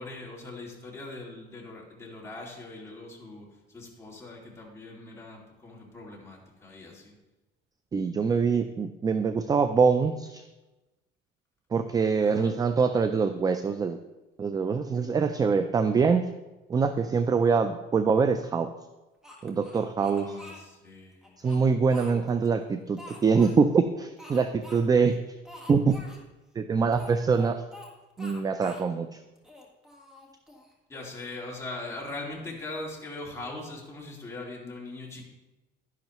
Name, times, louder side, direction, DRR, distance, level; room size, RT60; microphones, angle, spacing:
voice 1, 0.0-7.2 12.2-12.6 20.0-21.4 30.9-35.2, left 2 dB, 15° left, -3 dB, 2.2 m, -41 dB
voice 2, 7.9-10.4 11.7-14.0 14.4-16.3 16.7-18.7 19.4-20.2 21.4-25.2 25.7-26.0 26.6-27.6 28.2-29.1, right 5 dB, 20° right, 10 dB, 0.3 m, -24 dB
Speech, 19.2-20.6 21.2-22.5 23.0-23.6 24.2-24.8 25.1-25.2 25.4-26.2 26.9-27.9 28.2-28.9 29.4-30.7, left 1 dB, ahead, 1.5 m, -47 dB
11.5 x 10.5 x 3.0 m, 1.1 s
cardioid pair, 150°, 21 cm